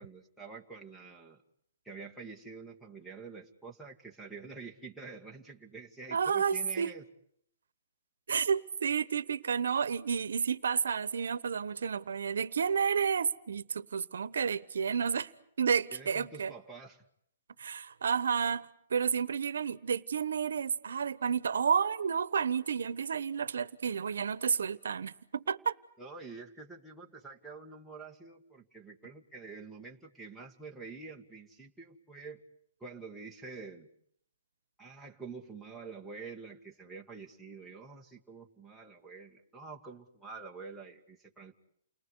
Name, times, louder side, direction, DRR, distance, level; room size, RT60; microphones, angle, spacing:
voice 1, 0.0-1.4 1.9-7.0 15.9-17.0 26.0-32.4 32.8-33.9 34.8-41.6, right 4 dB, ahead, 1.8 m, -47 dB
voice 2, 6.1-6.9 8.3-15.3 15.6-16.5 17.6-25.7, right 6 dB, 80° right, 1.1 m, -31 dB
29.5 x 20.0 x 8.1 m
hypercardioid pair, 155°, 0 cm